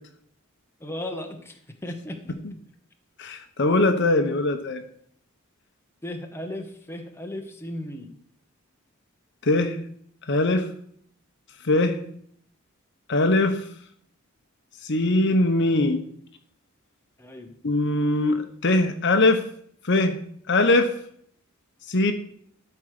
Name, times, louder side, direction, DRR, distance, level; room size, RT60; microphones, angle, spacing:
voice 1, 0.8-2.4 6.0-8.1 17.2-17.5, left 1 dB, 10° left, 3 dB, 1.0 m, -36 dB
voice 2, 3.2-4.8 9.4-9.8 10.3-10.7 11.6-12.0 13.1-13.6 14.8-16.0 17.6-19.4 19.9-20.2 20.5-20.9 21.9-22.1, left 2 dB, 60° left, 7 dB, 1.0 m, -21 dB
12.5 x 4.7 x 6.7 m, 0.64 s
head